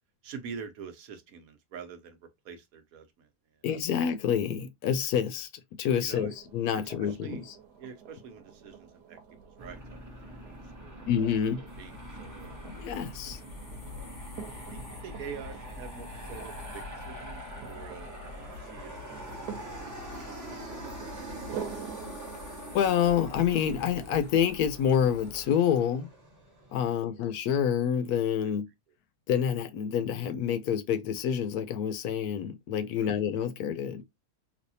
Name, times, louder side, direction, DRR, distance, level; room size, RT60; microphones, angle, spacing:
voice 1, 0.2-2.2 2.4-3.6 6.0-6.4 6.7-7.4 7.8-10.0 10.2-11.1 11.4-12.6 13.9-14.2 14.6-20.0 20.2-21.8 27.1-27.3 28.4-28.5 33.0-33.2, right 6 dB, 65° right, 1.1 m, -46 dB
voice 2, 3.6-5.5 5.8-7.4 11.1-11.6 12.6-13.4 22.7-26.1 26.7-28.7 29.3-34.0, left 8 dB, 75° left, 1.1 m, -27 dB
sound 1, 6.3-25.5, right 8 dB, 85° right, 1.2 m, -48 dB
Aircraft, 9.6-27.0, right 1 dB, 15° right, 0.6 m, -45 dB
sound 2, 11.7-25.4, left 4 dB, 40° left, 0.8 m, -47 dB
3.4 x 2.7 x 2.7 m
omnidirectional pair, 1.7 m